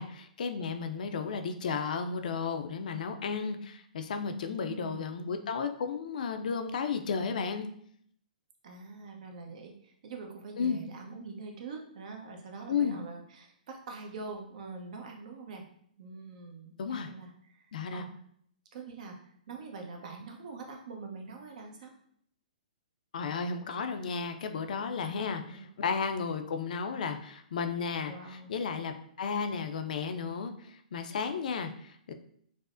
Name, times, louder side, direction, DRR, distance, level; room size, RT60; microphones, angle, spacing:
voice 1, 0.0-7.7 10.6-10.8 12.7-13.0 16.8-17.1 17.7-18.0 23.1-32.1, left 5 dB, 65° left, 7 dB, 0.4 m, -33 dB
voice 2, 4.4-5.2 8.6-15.7 16.0-17.6 17.9-18.1 18.7-19.2 19.5-21.9 25.4-25.5 28.0-28.5, right 4 dB, 60° right, 2 dB, 0.7 m, -44 dB
4.8 x 2.0 x 2.5 m, 0.66 s
hypercardioid pair, 135°, 5 cm